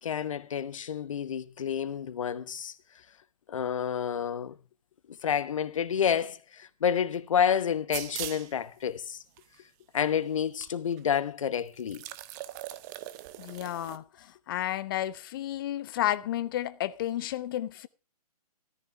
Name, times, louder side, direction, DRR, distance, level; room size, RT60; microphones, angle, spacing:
voice 1, 0.0-2.8 3.5-4.5 5.1-9.2 9.9-12.0, left 8 dB, 55° left, 1.2 m, -29 dB
sound 1, 7.9-8.5 9.4-9.5 10.6-10.7 11.0-11.1 11.8-14.0, right 14 dB, 25° right, 0.9 m, -40 dB
voice 2, 13.4-17.9, left 13 dB, 35° left, 0.8 m, -32 dB
14.0 x 13.5 x 3.3 m
figure-of-eight pair, 130°, 20 cm